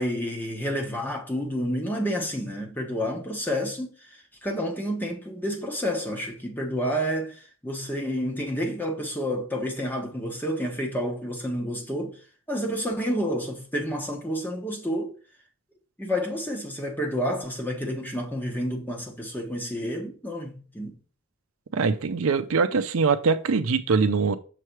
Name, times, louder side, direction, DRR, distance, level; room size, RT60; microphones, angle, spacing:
voice 1, 0.0-4.1 4.4-12.2 12.5-15.2 16.0-21.0, equal, 10° left, 1.2 m, -29 dB
voice 2, 21.7-24.4, right 4 dB, 75° right, 0.5 m, -23 dB
6.6 x 3.2 x 4.5 m
head